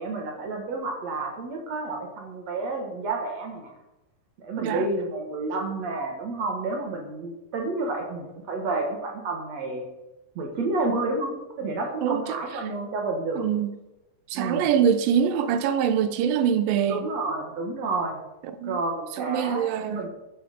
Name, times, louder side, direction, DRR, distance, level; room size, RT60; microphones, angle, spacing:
voice 1, 0.0-3.7 4.4-9.8 10.4-13.5 14.3-14.7 16.9-18.2 18.6-20.1, right 3 dB, 55° right, 2.4 m, -30 dB
voice 2, 12.0-12.4 13.4-13.7 14.3-17.1 18.4-18.8 19.2-20.1, right 8 dB, 90° right, 2.6 m, -24 dB
13.0 x 7.1 x 5.3 m
omnidirectional pair, 4.0 m